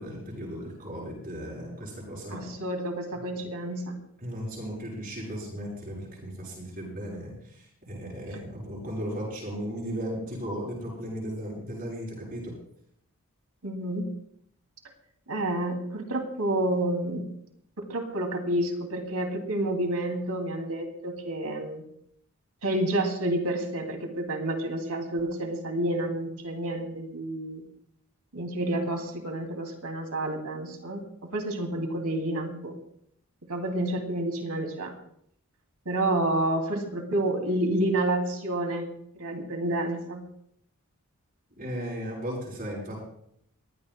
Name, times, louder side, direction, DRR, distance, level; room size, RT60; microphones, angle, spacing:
voice 1, 0.0-2.5 3.3-3.4 4.2-12.5 41.5-43.0, equal, 40° right, -4 dB, 7.6 m, -36 dB
voice 2, 2.3-4.0 13.6-14.1 15.3-17.3 17.8-21.8 22.6-27.6 28.3-32.8 33.5-34.9 35.9-38.9 39.1-40.2, right 1 dB, 90° right, 4 dB, 2.6 m, -29 dB
22.5 x 16.0 x 2.2 m, 0.70 s
head